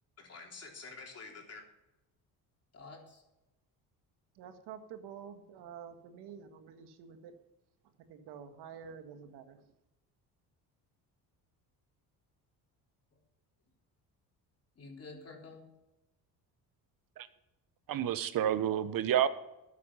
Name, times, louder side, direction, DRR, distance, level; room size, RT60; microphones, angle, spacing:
voice 1, 0.2-1.7 2.7-3.2 13.1-13.2 14.8-15.7, left 3 dB, 40° left, 0 dB, 3.8 m, -49 dB
voice 2, 4.3-7.3 8.1-9.7, right 7 dB, 85° right, 7 dB, 1.7 m, -49 dB
voice 3, 17.9-19.3, right 10 dB, 60° right, 13 dB, 1.1 m, -29 dB
13.0 x 8.5 x 5.6 m, 0.93 s
cardioid pair, 105°, 39 cm